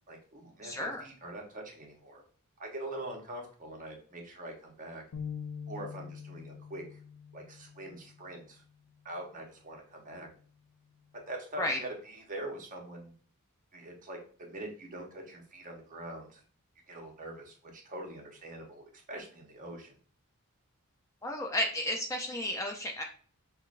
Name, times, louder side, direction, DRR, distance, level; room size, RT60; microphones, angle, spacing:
voice 1, 0.1-2.2 2.6-5.0 5.7-7.0 7.3-8.6 9.0-10.3 11.3-13.1 13.7-16.4 16.9-19.9, right 1 dB, 35° right, 0 dB, 0.9 m, -43 dB
voice 2, 0.6-1.0 11.6-11.8 21.2-23.0, left 1 dB, 15° left, 2 dB, 0.4 m, -32 dB
sound 1, 5.1-8.6, left 7 dB, 85° left, 0.6 m, -44 dB
5.6 x 2.1 x 2.4 m, 0.43 s
head